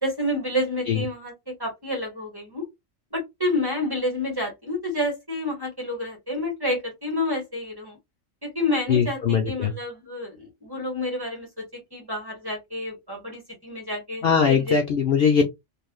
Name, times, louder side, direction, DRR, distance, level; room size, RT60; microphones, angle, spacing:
voice 1, 0.0-2.6 3.1-8.0 8.4-14.8, left 1 dB, 20° right, 1.5 m, -29 dB
voice 2, 8.9-9.7 14.2-15.4, left 6 dB, 60° left, 0.7 m, -21 dB
3.3 x 2.6 x 2.2 m
omnidirectional pair, 1.3 m